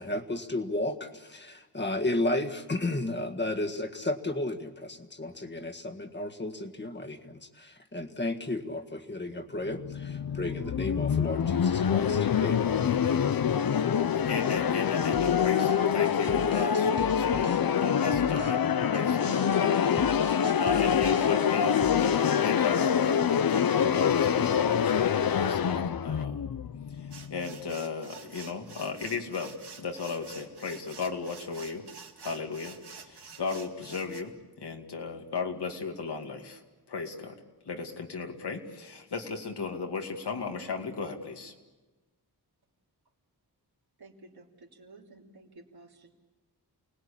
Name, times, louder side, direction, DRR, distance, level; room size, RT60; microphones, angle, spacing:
voice 1, 0.0-13.2, left 1 dB, 25° left, 4 dB, 1.8 m, -33 dB
sound 1, 9.7-27.5, left 8 dB, 60° left, 0.7 m, -26 dB
voice 2, 14.1-23.2 23.5-26.4 26.9-31.8 32.2-36.6 36.9-37.3 37.7-41.5, left 4 dB, 80° left, 3 dB, 2.5 m, -36 dB
sound 2, 15.1-17.7 18.1-18.6 18.9-21.4 21.8-22.3, right 4 dB, 40° right, 1.4 m, -42 dB
sound 3, 27.1-34.2, right 5 dB, 85° right, 2.3 m, -48 dB
voice 3, 44.0-46.1, right 2 dB, 70° right, 0 dB, 3.3 m, -53 dB
29.0 x 19.5 x 8.7 m, 1.2 s
wide cardioid pair, 130°, 39 cm